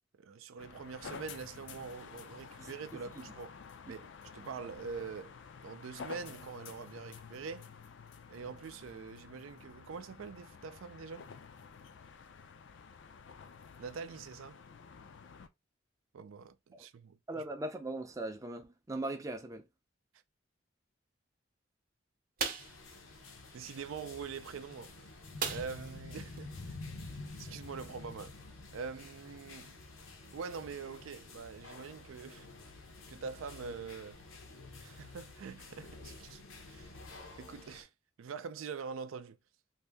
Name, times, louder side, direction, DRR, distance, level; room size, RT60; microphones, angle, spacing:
voice 1, 0.2-3.5 3.9-5.4 5.6-7.7 8.3-11.3 13.8-14.6 16.1-17.5 23.5-25.1 25.5-26.8 27.1-28.3 28.7-29.7 30.3-32.5 33.1-34.2 34.8-36.4 36.7-36.9 37.4-37.9 38.2-39.4, right 5 dB, 80° right, 0.4 m, -44 dB
sound 1, 0.6-15.5, left 6 dB, 60° left, 0.4 m, -51 dB
voice 2, 17.3-19.6, right 2 dB, 15° right, 0.4 m, -39 dB
sound 2, 22.4-22.8 25.4-26.0 26.3-26.4 26.8-27.0, right 6 dB, 45° right, 0.7 m, -36 dB
sound 3, 22.6-37.8, left 3 dB, 80° left, 0.8 m, -49 dB
2.6 x 2.6 x 3.4 m
head